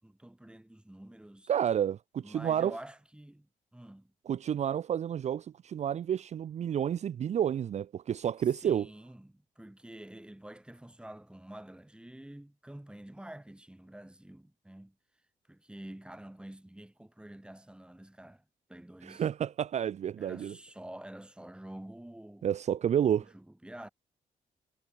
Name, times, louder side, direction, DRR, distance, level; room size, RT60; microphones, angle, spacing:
voice 1, 0.0-1.5 2.2-4.1 8.6-15.0 15.5-18.4 18.7-19.3 20.2-22.5 23.2-23.9, right 1 dB, 5° right, 4.1 m, -48 dB
voice 2, 1.5-2.7 4.3-8.9 19.0-20.5 22.4-23.3, right 9 dB, 50° right, 0.5 m, -30 dB
cardioid pair, 90°, 15 cm